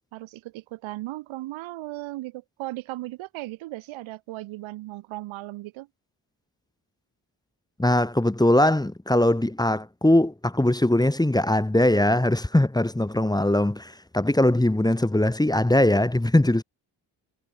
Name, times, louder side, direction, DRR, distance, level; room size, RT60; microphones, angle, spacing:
voice 1, 0.1-5.9, right 18 dB, 85° right, 1.2 m, -36 dB
voice 2, 7.8-16.6, left 1 dB, 10° left, 1.2 m, -21 dB
supercardioid pair, 45°, 46 cm